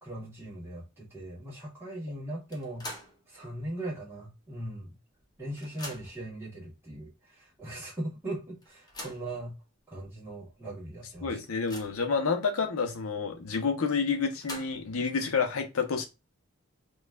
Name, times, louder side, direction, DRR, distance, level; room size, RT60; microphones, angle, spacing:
voice 1, 0.0-2.9 3.3-4.9 5.4-9.5 9.9-11.4, right 1 dB, 10° right, 1.5 m, -39 dB
sound 1, 2.5-3.2 3.6-3.7 4.8-4.9 5.2-6.3 7.1-7.2 7.6-7.7 8.6-9.3 10.0-10.1 10.5-10.6 11.1-12.1 14.1-15.0, left 1 dB, 20° left, 0.7 m, -44 dB
voice 2, 11.2-16.1, left 5 dB, 85° left, 0.7 m, -29 dB
5.1 x 2.3 x 2.2 m
head